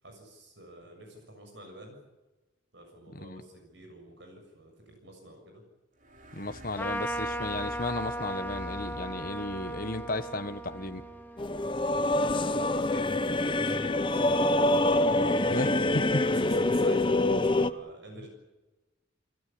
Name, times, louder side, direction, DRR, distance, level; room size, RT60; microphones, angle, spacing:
voice 1, 0.0-2.0 2.7-5.6 12.0-15.1 16.3-18.3, right 1 dB, 65° right, 4 dB, 6.9 m, -48 dB
sound 1, 6.0-13.1, equal, 45° right, 2.8 m, -48 dB
voice 2, 6.3-11.0 15.5-16.2, left 2 dB, 45° left, 9 dB, 1.4 m, -34 dB
Trumpet, 6.8-12.6, equal, 10° left, 1.1 m, -37 dB
sound 2, 11.4-17.7, left 2 dB, 25° left, 0.8 m, -25 dB
29.5 x 16.5 x 8.7 m, 1.1 s
head